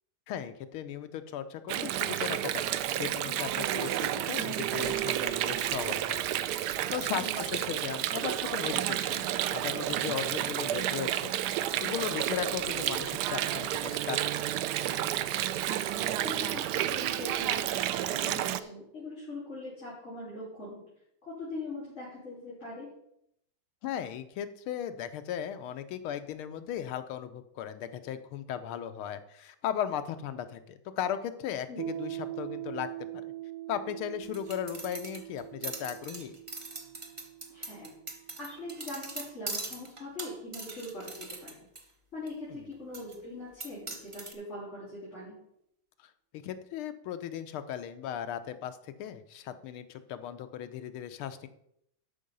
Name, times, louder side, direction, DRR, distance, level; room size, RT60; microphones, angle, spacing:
voice 1, 0.3-6.2 6.9-11.3 11.8-14.5 23.8-33.3 33.7-36.4 42.5-42.6 46.0-51.5, left 9 dB, 80° left, 10 dB, 1.6 m, -37 dB
Water, 1.7-18.6, right 12 dB, 85° right, 0.9 m, -31 dB
voice 2, 15.6-20.8 21.2-22.9 31.7-31.8 37.5-41.6 42.1-45.4, left 2 dB, 30° left, -9 dB, 3.9 m, -42 dB
Piano, 31.8-39.0, right 14 dB, 60° right, 0.9 m, -42 dB
sound 1, 34.2-41.8 42.3-42.4 42.9-43.1 43.6-44.3, right 3 dB, 35° right, 0.4 m, -41 dB
12.5 x 5.5 x 5.3 m, 0.76 s
omnidirectional pair, 2.3 m